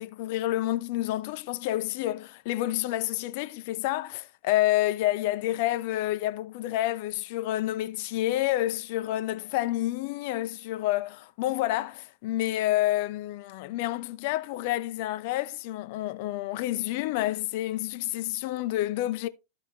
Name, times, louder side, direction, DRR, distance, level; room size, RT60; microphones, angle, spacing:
voice 1, 0.0-19.3, left 15 dB, 50° left, 0.6 m, -29 dB
13.5 x 4.9 x 3.0 m
figure-of-eight pair, 90°, 0 cm